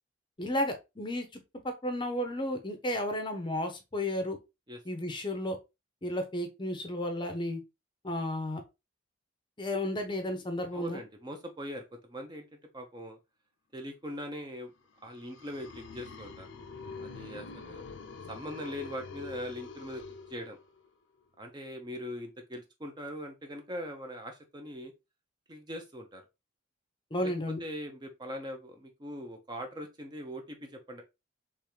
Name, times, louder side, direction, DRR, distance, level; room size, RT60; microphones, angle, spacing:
voice 1, 0.4-1.4 1.8-4.4 4.8-5.6 6.0-7.6 8.0-8.6 9.6-11.0 27.1-27.6, left 1 dB, 25° left, 6 dB, 0.6 m, -33 dB
voice 2, 10.7-12.4 12.7-13.2 13.7-14.7 15.0-16.5 17.0-17.8 18.3-20.0 20.3-20.6 21.4-24.9 25.5-26.2 27.2-31.0, equal, 20° right, 4 dB, 0.6 m, -41 dB
sound 1, 15.0-20.9, left 4 dB, 70° left, 0.5 m, -45 dB
3.5 x 3.2 x 3.0 m, 0.24 s
head